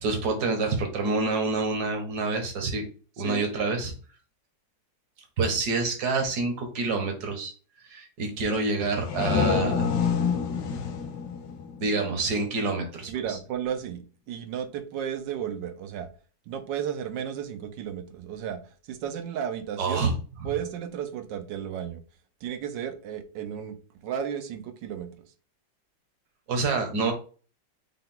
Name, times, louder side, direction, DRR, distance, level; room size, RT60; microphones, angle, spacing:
voice 1, 0.0-2.8 3.2-3.9 5.4-7.5 7.9-9.8 11.8-13.4 19.8-20.1 26.5-27.1, right 3 dB, 65° right, 4 dB, 1.6 m, -27 dB
sound 1, 8.8-12.4, left 6 dB, 85° left, 1.4 m, -27 dB
voice 2, 13.1-16.1 16.5-20.1 20.4-22.0 22.4-23.8 24.0-25.2, right 9 dB, 80° right, 8 dB, 1.4 m, -33 dB
5.6 x 2.3 x 3.7 m, 0.38 s
omnidirectional pair, 1.9 m